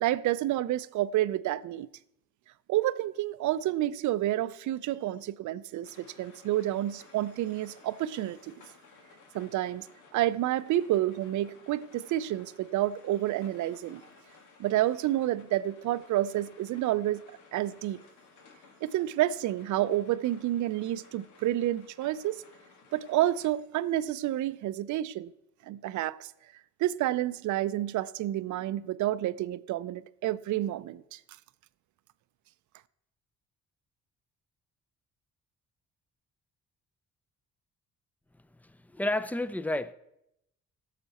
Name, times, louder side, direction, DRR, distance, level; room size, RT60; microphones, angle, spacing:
voice 1, 0.0-1.9 2.7-8.5 9.3-9.9 10.1-14.0 14.6-17.3 17.5-18.0 18.8-22.4 22.9-25.3 25.7-26.3 26.8-31.2, right 14 dB, 75° right, 0.5 m, -29 dB
sound 1, 5.8-23.5, left 4 dB, 80° left, 1.8 m, -57 dB
voice 2, 38.9-39.9, left 1 dB, 5° left, 0.5 m, -30 dB
17.0 x 6.7 x 4.2 m
cardioid pair, 90°, 30 cm